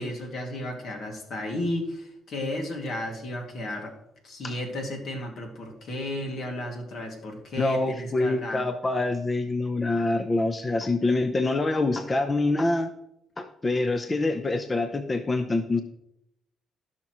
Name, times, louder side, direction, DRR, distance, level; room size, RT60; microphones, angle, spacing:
voice 1, 0.0-3.9 4.2-8.6, left 1 dB, 65° left, 2 dB, 2.4 m, -33 dB
voice 2, 7.6-12.9 13.4-15.8, left 2 dB, 25° left, 8 dB, 0.8 m, -25 dB
16.0 x 5.9 x 3.1 m, 0.80 s
cardioid pair, 90°, 0 cm